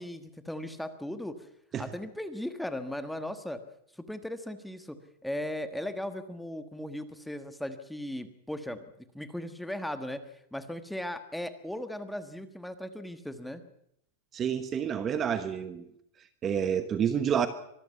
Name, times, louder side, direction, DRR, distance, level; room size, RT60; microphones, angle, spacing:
voice 1, 0.0-1.4 1.8-3.6 4.0-8.8 9.1-10.2 10.5-13.6, left 1 dB, ahead, 9 dB, 1.4 m, -37 dB
voice 2, 14.3-15.9 16.2-17.5, right 8 dB, 20° right, 11 dB, 1.1 m, -29 dB
24.0 x 13.5 x 8.3 m, 0.73 s
supercardioid pair, 155°, 0 cm